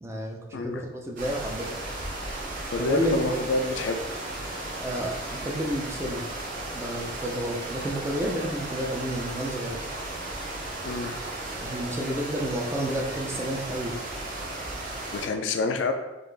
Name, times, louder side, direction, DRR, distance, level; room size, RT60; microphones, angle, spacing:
voice 1, 0.0-1.7 2.8-3.4 4.8-6.2 6.7-9.8 11.6-13.9, equal, 15° right, 0 dB, 0.4 m, -30 dB
voice 2, 0.5-0.8 2.7-4.0 10.8-11.2 15.1-15.9, left 3 dB, 80° left, 6 dB, 0.4 m, -27 dB
sound 1, 1.2-15.3, right 2 dB, 45° right, 0.8 m, -35 dB
3.8 x 2.5 x 3.3 m, 1.1 s
head